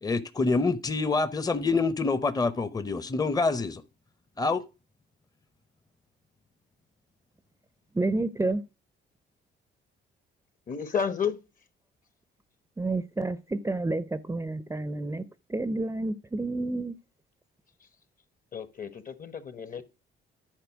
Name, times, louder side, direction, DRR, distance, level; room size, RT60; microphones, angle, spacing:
voice 1, 0.0-3.8 4.4-4.6, left 3 dB, 20° left, 0.8 m, -26 dB
voice 2, 7.9-8.6 12.8-15.2 15.5-16.9, right 2 dB, 15° right, 0.6 m, -29 dB
voice 3, 10.7-11.4 18.5-19.8, left 7 dB, 45° left, 1.1 m, -31 dB
10.5 x 4.2 x 6.1 m
cardioid pair, 90°, 20 cm